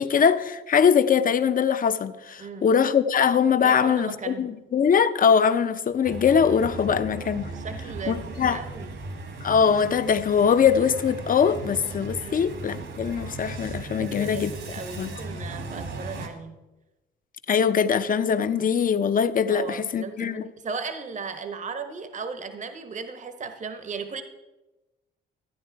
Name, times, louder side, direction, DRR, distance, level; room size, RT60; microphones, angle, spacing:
voice 1, 0.0-7.5 8.1-8.6 9.4-14.5 15.0-15.1 17.5-20.5, left 7 dB, 45° left, 0.7 m, -22 dB
voice 2, 3.6-4.6 6.9-9.0 12.2-12.4 14.0-16.6 19.5-24.2, right 5 dB, 40° right, 1.0 m, -36 dB
sound 1, 6.0-16.3, right 2 dB, 70° right, 2.1 m, -37 dB
14.0 x 9.3 x 4.6 m
cardioid pair, 90°, 20 cm